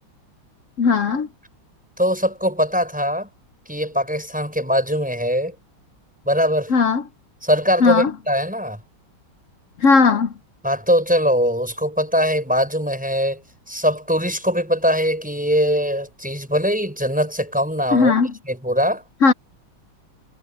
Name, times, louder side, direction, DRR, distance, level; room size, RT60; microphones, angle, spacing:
voice 1, 0.8-1.3 6.7-7.0 7.8-8.1 9.8-10.3 17.9-18.3 19.2-19.3, left 4 dB, 55° left, 0.9 m, -16 dB
voice 2, 2.0-3.3 3.7-5.5 6.3-6.7 7.4-8.8 10.6-13.4 13.7-18.1 18.5-19.0, equal, 5° right, 5.5 m, -21 dB
omnidirectional pair, 2.3 m